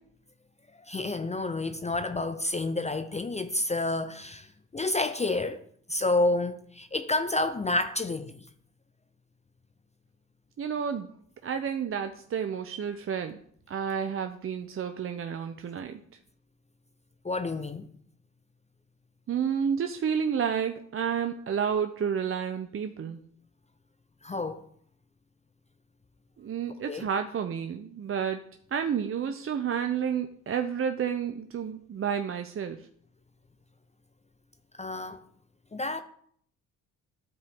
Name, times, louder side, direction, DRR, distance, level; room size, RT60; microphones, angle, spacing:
voice 1, 0.9-5.6 5.9-8.3 17.2-17.9 24.2-24.7 26.9-27.1 34.8-35.2 35.7-36.0, left 2 dB, 20° left, 0.6 m, -29 dB
voice 2, 10.6-11.1 11.4-13.4 13.7-16.0 19.3-23.2 26.4-28.4 28.7-32.8, right 7 dB, 35° right, 0.6 m, -30 dB
11.5 x 4.7 x 3.6 m
supercardioid pair, 60°, 36 cm